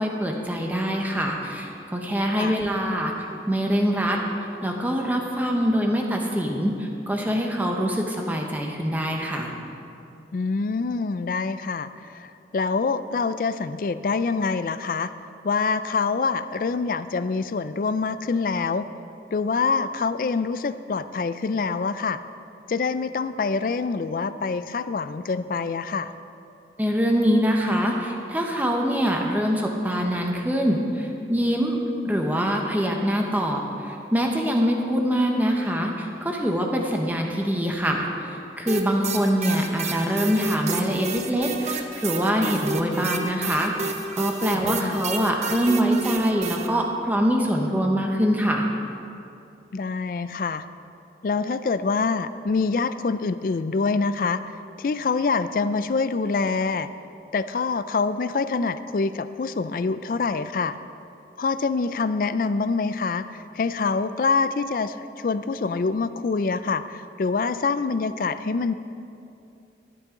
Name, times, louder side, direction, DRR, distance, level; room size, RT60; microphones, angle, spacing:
voice 1, 0.0-3.1 3.5-4.2 4.6-9.5 26.8-31.8 32.0-48.7, equal, 10° right, 1 dB, 0.9 m, -24 dB
voice 2, 10.3-11.9 12.1-12.3 12.5-15.1 15.4-18.8 19.3-22.2 22.7-26.1 44.5-45.0 49.7-50.6 51.2-54.4 54.8-56.9 57.3-60.7 61.4-63.2 63.6-64.9 65.2-68.7, left 4 dB, 50° left, 13 dB, 0.4 m, -25 dB
sound 1, 38.7-46.7, right 4 dB, 40° right, 0.7 m, -31 dB
13.5 x 11.0 x 3.8 m, 2.7 s
head